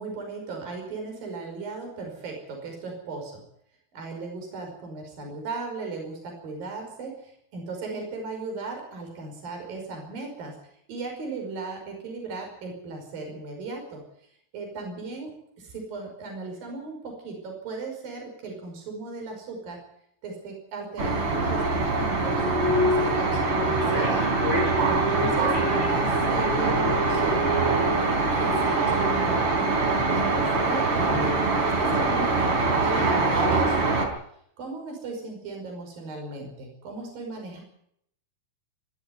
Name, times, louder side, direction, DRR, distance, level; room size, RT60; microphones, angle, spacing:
voice 1, 0.0-3.4 3.9-10.6 10.9-14.0 14.5-19.8 20.2-24.3 24.9-27.5 28.4-34.1 34.6-37.6, right 3 dB, 60° right, 2 dB, 7.1 m, -37 dB
sound 1, 21.0-34.1, right 3 dB, 35° right, 4.5 m, -23 dB
22.0 x 13.0 x 9.5 m, 0.71 s
omnidirectional pair, 4.5 m